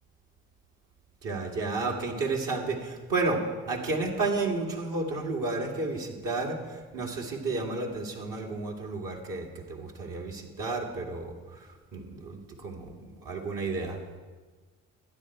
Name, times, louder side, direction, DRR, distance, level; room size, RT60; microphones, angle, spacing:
voice 1, 1.2-11.3 11.9-14.0, right 3 dB, 60° right, 0 dB, 2.3 m, -32 dB
12.0 x 10.0 x 4.5 m, 1.3 s
hypercardioid pair, 50°, 36 cm